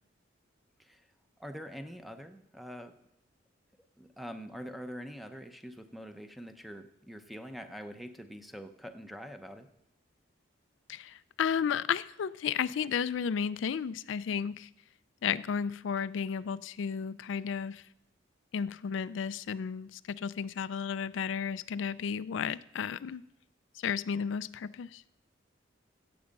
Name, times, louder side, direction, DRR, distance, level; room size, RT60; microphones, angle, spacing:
voice 1, 1.4-3.0 4.0-9.7, equal, ahead, 7 dB, 0.7 m, -44 dB
voice 2, 10.9-14.7 15.2-17.8 18.5-23.2 23.8-25.0, left 7 dB, 75° left, 15 dB, 0.4 m, -33 dB
16.0 x 7.7 x 5.3 m, 0.83 s
head